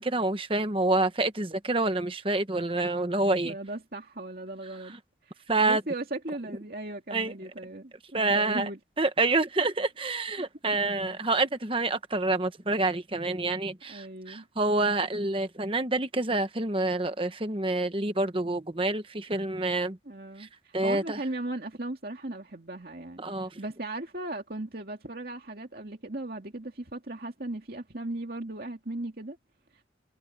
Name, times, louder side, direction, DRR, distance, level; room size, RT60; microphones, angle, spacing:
voice 1, 0.0-3.6 4.9-5.0 5.5-5.8 7.1-7.3 8.1-8.7 9.0-20.0 20.4-21.2 23.2-23.6, right 2 dB, 30° right, 1.1 m, -27 dB
voice 2, 3.4-4.9 5.2-8.8 13.9-14.5 20.1-29.4, right 2 dB, 50° right, 2.4 m, -37 dB
head